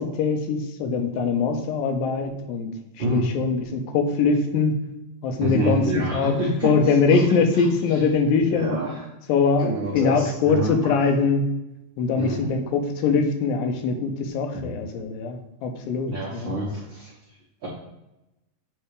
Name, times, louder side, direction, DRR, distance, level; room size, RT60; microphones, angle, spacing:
voice 1, 0.0-2.7 3.1-4.8 5.2-5.8 6.1-6.3 6.6-8.8 9.3-11.5 12.0-16.5, left 4 dB, 90° left, 4 dB, 2.6 m, -22 dB
voice 2, 5.4-7.3 7.5-8.0 8.4-9.0 9.6-10.7 12.2-12.5 14.5-14.7 16.0-17.1 17.6-17.7, equal, 70° right, -6 dB, 1.1 m, -28 dB
7.9 x 3.3 x 4.8 m, 0.94 s
omnidirectional pair, 4.0 m